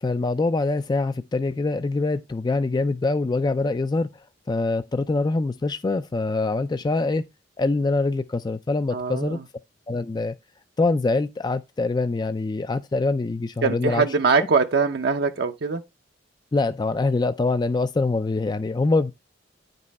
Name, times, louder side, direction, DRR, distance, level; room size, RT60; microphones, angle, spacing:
voice 1, 0.0-4.1 4.5-7.2 7.6-9.4 9.9-10.3 10.8-14.0 16.5-19.1, left 3 dB, 25° left, 0.4 m, -24 dB
voice 2, 8.9-9.4 13.6-15.8, right 4 dB, 60° right, 0.6 m, -22 dB
9.5 x 5.3 x 4.0 m
head